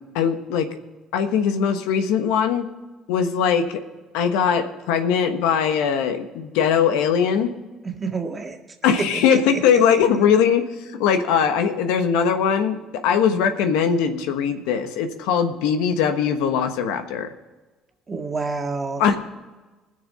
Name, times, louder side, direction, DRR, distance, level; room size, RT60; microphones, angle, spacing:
voice 1, 0.1-0.7 1.1-2.7 3.1-3.8 4.1-7.5 8.8-12.8 13.0-17.3 19.0-19.2, left 7 dB, 80° left, 7 dB, 1.2 m, -20 dB
voice 2, 7.8-8.6 18.1-19.0, right 4 dB, 25° right, 3 dB, 1.9 m, -28 dB
20.0 x 6.8 x 5.6 m, 1.2 s
supercardioid pair, 90°, 0 cm